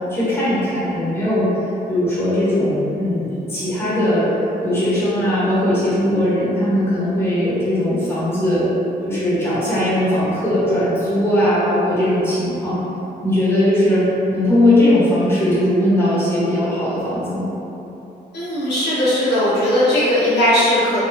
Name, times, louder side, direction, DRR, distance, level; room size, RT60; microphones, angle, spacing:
voice 1, 0.1-1.5 1.9-4.3 4.6-8.6 9.0-12.8 13.2-17.5, left 1 dB, 15° left, -11 dB, 1.1 m, -19 dB
voice 2, 18.3-21.0, left 1 dB, 75° left, -12 dB, 1.4 m, -18 dB
4.0 x 2.2 x 2.7 m, 2.9 s
cardioid pair, 120°, 18 cm